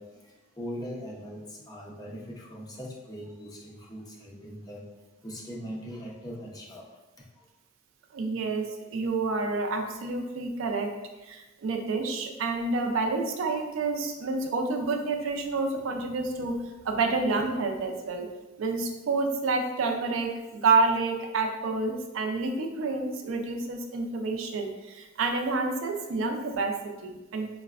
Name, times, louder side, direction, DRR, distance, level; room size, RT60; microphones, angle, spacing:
voice 1, 0.0-4.9 5.2-6.9 7.2-7.4, equal, 20° left, -3 dB, 0.5 m, -41 dB
voice 2, 8.1-10.9 11.2-18.3 18.6-27.5, right 3 dB, 70° right, 3 dB, 0.4 m, -29 dB
4.0 x 2.1 x 2.4 m, 1.1 s
head